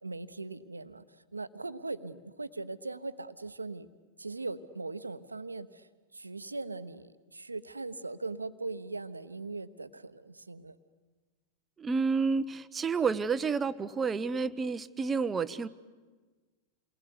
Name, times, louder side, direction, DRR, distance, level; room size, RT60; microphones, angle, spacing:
voice 1, 0.0-3.9 4.2-10.8, right 3 dB, 80° right, 12 dB, 1.0 m, -40 dB
voice 2, 11.8-15.7, right 5 dB, 20° right, 14 dB, 1.0 m, -30 dB
29.0 x 20.5 x 9.7 m, 1.4 s
figure-of-eight pair, 90°, 0 cm